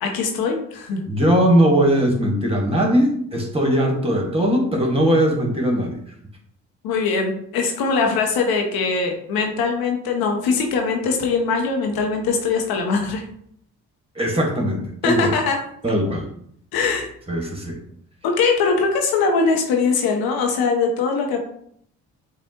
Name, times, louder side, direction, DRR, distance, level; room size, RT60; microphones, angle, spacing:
voice 1, 0.0-1.0 6.8-13.2 15.0-15.6 16.7-17.1 18.2-21.4, left 4 dB, 70° left, 3 dB, 1.0 m, -21 dB
voice 2, 1.1-6.0 14.2-15.3 15.8-16.3 17.3-17.8, equal, 15° right, 0 dB, 1.7 m, -19 dB
7.1 x 2.5 x 2.9 m, 0.67 s
hypercardioid pair, 45°, 38 cm